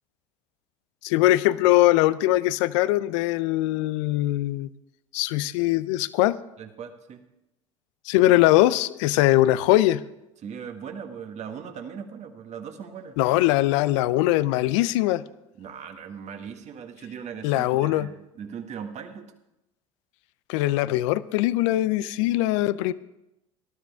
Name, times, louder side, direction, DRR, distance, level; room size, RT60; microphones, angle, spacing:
voice 1, 1.0-4.7 5.1-6.4 8.1-10.0 13.2-15.2 17.4-18.1 20.5-22.9, left 16 dB, 70° left, 17 dB, 0.6 m, -21 dB
voice 2, 6.6-7.2 10.4-13.2 15.6-19.3, right 7 dB, 45° right, 6 dB, 1.8 m, -39 dB
19.0 x 12.5 x 3.5 m, 0.90 s
hypercardioid pair, 75°, 16 cm